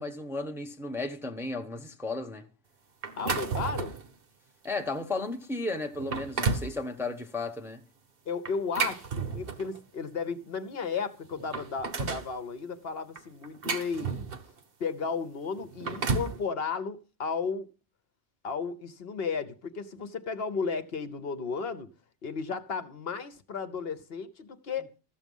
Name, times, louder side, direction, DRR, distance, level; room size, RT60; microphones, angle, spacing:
voice 1, 0.0-2.5 4.6-7.8, left 2 dB, ahead, 0.8 m, -34 dB
sound 1, 3.0-4.1 4.6-4.8 5.4-5.5 5.9-6.7 8.4-9.8 10.8-10.9 11.2-12.3 13.2-14.6 15.6-16.4, right 5 dB, 55° right, 1.2 m, -32 dB
voice 2, 3.2-4.0 8.3-14.2 14.8-17.7 18.4-21.9 22.2-24.9, left 5 dB, 60° left, 1.0 m, -34 dB
14.0 x 7.2 x 5.4 m
omnidirectional pair, 1.2 m